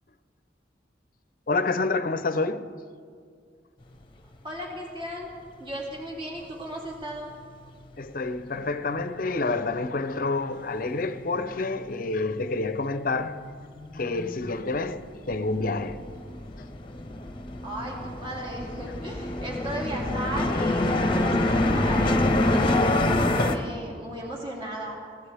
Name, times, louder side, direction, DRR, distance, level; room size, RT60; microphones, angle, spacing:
voice 1, 1.5-2.7 8.0-13.4 13.9-16.0, left 3 dB, 50° left, 0.7 m, -28 dB
voice 2, 4.4-5.3 5.6-7.3 17.6-22.2 22.5-25.0, equal, 30° right, 2.5 m, -36 dB
sound 1, 10.7-10.8 11.0-12.2 12.4-23.6, left 1 dB, 30° left, 1.0 m, -26 dB
23.0 x 17.0 x 3.5 m
head